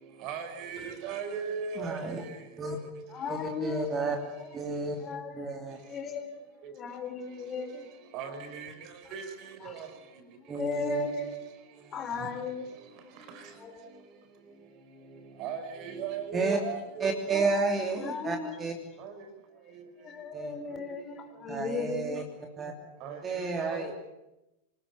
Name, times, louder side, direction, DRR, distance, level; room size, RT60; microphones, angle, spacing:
voice 1, 0.2-2.0 8.1-8.7 9.1-9.2 15.4-17.6 23.0-23.2 23.5-23.9, right 6 dB, 40° right, 4.4 m, -36 dB
voice 2, 1.8-2.2 2.6-2.8 3.3-4.2 4.5-5.0 5.3-5.8 10.5-11.0 16.3-16.6 17.0-18.7 20.3-20.5 21.5-22.2 22.6-22.7 23.2-23.9, right 3 dB, 20° right, 3.1 m, -31 dB
voice 3, 3.1-5.6 5.8-6.3 6.6-7.9 9.1-9.2 9.6-9.8 10.3-11.4 11.9-13.2 13.5-14.1 18.0-18.7 19.7-22.2, left 4 dB, 25° left, 3.7 m, -37 dB
27.0 x 19.5 x 8.2 m
figure-of-eight pair, 90°, 0 cm